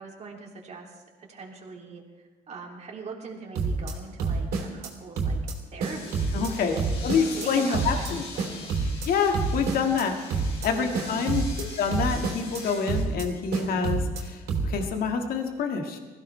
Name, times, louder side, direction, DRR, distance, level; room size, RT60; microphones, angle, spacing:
voice 1, 0.0-2.0 2.5-5.4 5.7-7.0 7.3-8.8 10.6-11.6, right 4 dB, 40° right, 0 dB, 2.8 m, -42 dB
sound 1, 3.5-3.9 4.2-4.9 5.2-5.5 5.8-6.5 6.8-7.5 7.7-8.1 8.4-9.1 9.3-10.0 10.3-10.7 10.9-11.6 11.9-12.6 12.9-13.2 13.5-14.2 14.5-14.8, right 4 dB, 75° right, 3.4 m, -28 dB
sound 2, 5.8-13.0, left 4 dB, 85° left, 3.7 m, -42 dB
voice 2, 6.3-6.7 7.0-8.2 9.1-10.1 10.6-11.4 11.8-16.0, left 5 dB, 60° left, 4 dB, 1.9 m, -27 dB
21.0 x 15.5 x 3.3 m, 1.3 s
cardioid pair, 110°, 17 cm